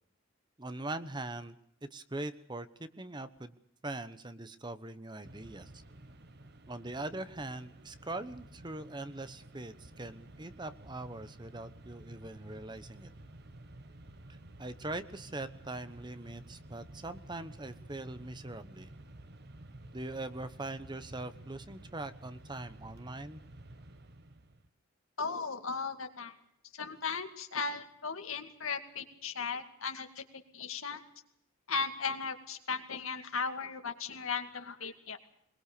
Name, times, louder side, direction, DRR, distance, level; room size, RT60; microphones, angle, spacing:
voice 1, 0.6-1.6 1.8-3.5 3.8-5.8 6.7-13.1 14.3-18.9 19.9-23.4, right 2 dB, 20° right, 11 dB, 1.0 m, -42 dB
Mechanisms, 5.2-24.7, right 1 dB, 50° right, 1.4 m, -52 dB
voice 2, 25.2-26.3 26.7-30.2 30.5-31.0 31.7-35.2, left 5 dB, 80° left, 6 dB, 2.3 m, -36 dB
22.0 x 21.5 x 6.8 m, 0.74 s
head